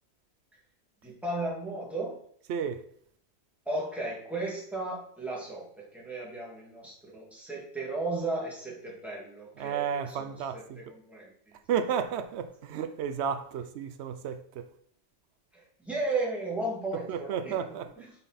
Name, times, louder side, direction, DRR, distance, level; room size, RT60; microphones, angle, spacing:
voice 1, 1.0-2.2 3.7-11.6 15.5-18.1, right 2 dB, ahead, 2.1 m, -35 dB
voice 2, 2.5-2.8 9.6-10.8 11.7-14.7 17.1-17.9, right 7 dB, 90° right, 0.9 m, -32 dB
5.7 x 5.4 x 4.1 m
omnidirectional pair, 1.1 m